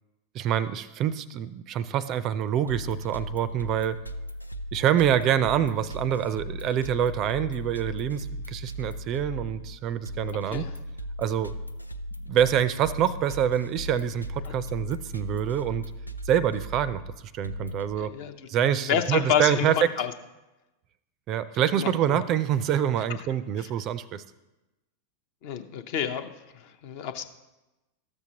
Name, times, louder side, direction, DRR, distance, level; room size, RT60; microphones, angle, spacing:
voice 1, 0.3-4.0 4.7-10.6 11.2-11.5 12.3-15.8 16.3-17.0 17.3-18.1 18.5-19.8 21.3-24.2, right 10 dB, 35° right, 16 dB, 0.4 m, -26 dB
sound 1, 2.7-17.9, equal, 90° left, 0.4 m, -37 dB
voice 2, 18.0-18.3 18.8-20.1 21.6-22.2 23.1-23.2 23.6-23.7 25.4-27.2, left 8 dB, 50° left, 9 dB, 0.6 m, -29 dB
13.0 x 7.0 x 2.8 m, 1.0 s
figure-of-eight pair, 90°, 0 cm